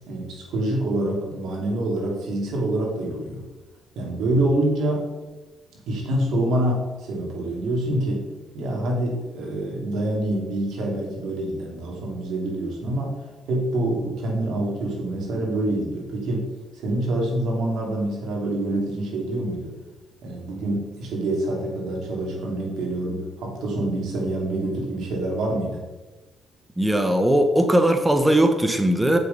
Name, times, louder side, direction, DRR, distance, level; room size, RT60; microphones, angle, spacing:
voice 1, 0.1-3.4 3.9-5.1 5.9-8.3 8.5-13.2 13.5-19.7 20.2-25.8, right 1 dB, 80° right, -1 dB, 3.0 m, -26 dB
voice 2, 26.8-29.2, right 1 dB, 10° right, 6 dB, 1.0 m, -19 dB
8.0 x 6.8 x 5.3 m, 1.2 s
cardioid pair, 90°, 0 cm